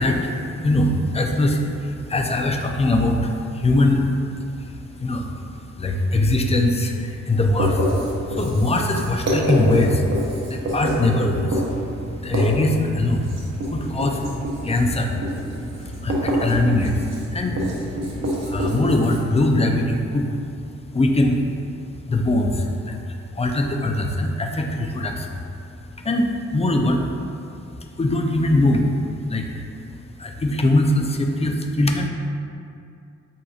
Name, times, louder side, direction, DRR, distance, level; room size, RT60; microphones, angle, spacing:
voice 1, 0.0-28.9 29.3-32.1, left 1 dB, 20° left, 3 dB, 0.4 m, -22 dB
Writing, 7.5-19.2, equal, 60° right, 0.9 m, -27 dB
7.7 x 2.8 x 2.4 m, 2.5 s
cardioid pair, 95°, 29 cm